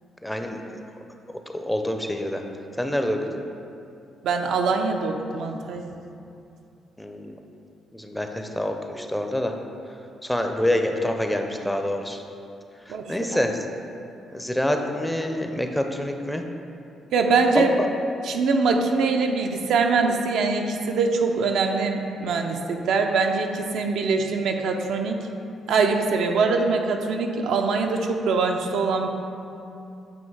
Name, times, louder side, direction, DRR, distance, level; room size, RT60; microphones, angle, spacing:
voice 1, 0.2-0.6 1.5-2.4 2.8-3.4 7.0-7.3 7.9-9.5 10.2-12.2 12.9-13.5 14.3-16.4 17.5-17.9, left 1 dB, 5° left, 4 dB, 0.5 m, -26 dB
voice 2, 4.2-5.9 12.9-13.4 17.1-17.7 18.2-25.2 25.7-29.1, right 4 dB, 75° right, 3 dB, 0.5 m, -23 dB
7.9 x 2.8 x 4.6 m, 2.6 s
cardioid pair, 90°, 0 cm